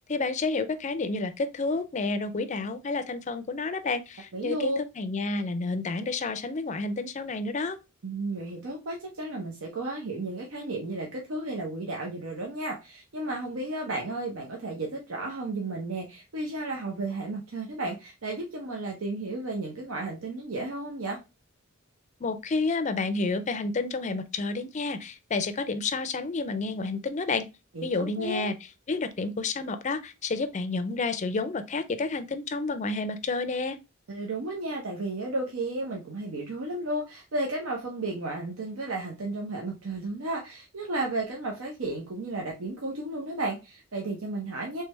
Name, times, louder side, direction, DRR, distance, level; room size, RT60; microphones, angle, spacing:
voice 1, 0.1-7.8 22.2-27.5 27.8-28.6 28.9-33.8, left 3 dB, 35° left, 0.4 m, -30 dB
voice 2, 4.3-4.8 8.0-21.2 27.7-28.5 34.1-44.8, right 2 dB, 75° right, 0.8 m, -33 dB
3.3 x 3.3 x 3.0 m
head